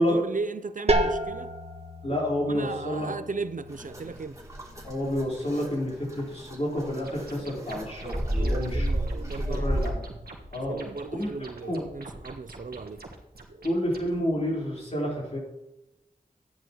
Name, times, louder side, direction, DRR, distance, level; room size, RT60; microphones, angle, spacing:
voice 1, 0.0-1.5 2.1-2.2 2.5-4.4 8.4-9.9 10.7-13.0, right 4 dB, 60° right, 0.5 m, -36 dB
sound 1, 0.9-6.4, right 1 dB, 45° right, 1.3 m, -32 dB
voice 2, 2.0-3.1 4.8-8.9 9.5-10.0 10.5-10.8 11.1-11.3 11.6-11.8 13.6-15.4, equal, 45° left, 4.3 m, -29 dB
sound 2, 3.7-9.9, right 1 dB, 20° right, 2.9 m, -32 dB
sound 3, 7.0-14.1, right 2 dB, 85° right, 1.5 m, -46 dB
13.5 x 10.0 x 3.1 m
wide cardioid pair, 50°, 15 cm